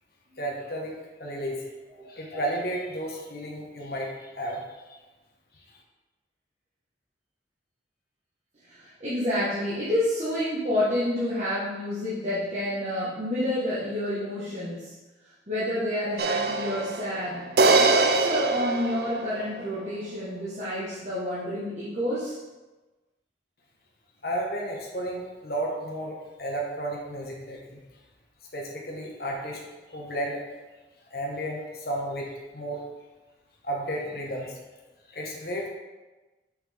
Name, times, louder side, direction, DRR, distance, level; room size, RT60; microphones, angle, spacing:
voice 1, 0.4-0.9 1.2-1.7 2.1-4.6 4.9-5.0 24.2-27.8 28.5-29.6 29.9-30.4 31.1-32.8 33.6-34.6 35.1-35.7, right 1 dB, 55° left, -1 dB, 1.3 m, -33 dB
voice 2, 8.6-14.9 15.5-17.5 17.8-22.4, left 1 dB, 40° right, -11 dB, 1.5 m, -29 dB
sound 1, 16.2-19.6, right 3 dB, 55° right, 0.5 m, -23 dB
6.5 x 5.5 x 3.6 m, 1.2 s
head